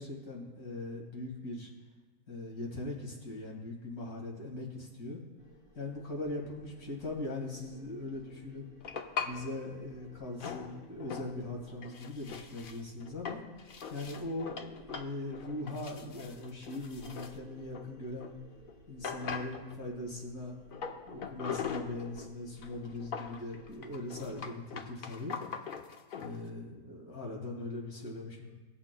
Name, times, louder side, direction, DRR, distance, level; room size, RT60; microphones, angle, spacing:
voice 1, 0.0-1.7 2.3-5.2 5.7-8.7 9.2-13.4 13.9-18.3 18.9-20.6 21.1-25.4 26.1-28.5, left 2 dB, 80° left, -2 dB, 2.5 m, -40 dB
sound 1, 5.4-24.4, equal, 30° left, 1.6 m, -58 dB
sound 2, 8.8-9.4 10.4-11.4 11.7-18.3 18.7-18.8 19.0-19.9 20.7-22.3 22.6-26.4, left 6 dB, 60° left, 0.5 m, -41 dB
18.5 x 7.3 x 2.2 m, 1.3 s
omnidirectional pair, 1.6 m